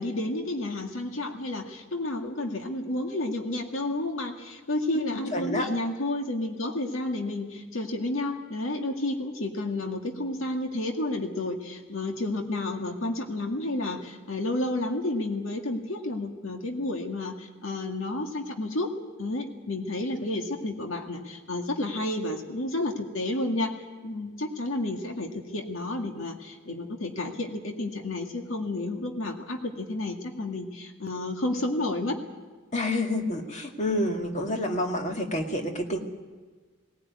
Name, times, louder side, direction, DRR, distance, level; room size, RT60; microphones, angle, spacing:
voice 1, 0.0-18.9 19.2-32.2, left 2 dB, 80° left, 3 dB, 2.0 m, -31 dB
voice 2, 4.9-5.7 32.7-36.0, left 1 dB, 35° left, 3 dB, 2.0 m, -29 dB
18.5 x 18.5 x 9.5 m, 1.4 s
head